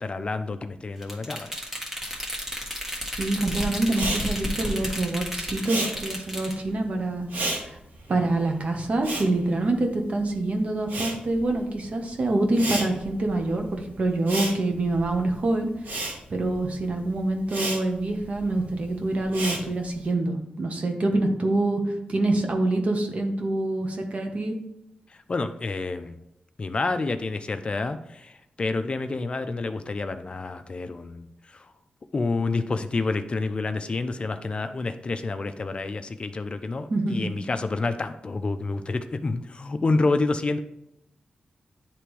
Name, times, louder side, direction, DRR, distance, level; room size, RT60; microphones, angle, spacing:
voice 1, 0.0-1.6 25.3-26.2 26.6-31.7 32.1-40.6, left 3 dB, 40° left, 9 dB, 0.4 m, -28 dB
sound 1, 1.0-6.6, equal, 10° right, 1.5 m, -32 dB
voice 2, 3.2-7.8 8.1-15.7 16.3-21.8 22.1-24.6 36.9-37.3, right 2 dB, 55° right, 3 dB, 1.1 m, -26 dB
Respiratory sounds, 3.9-10.3 10.6-20.1, right 2 dB, 85° right, 1.4 m, -34 dB
9.7 x 3.4 x 3.1 m, 0.80 s
wide cardioid pair, 90°, 3 cm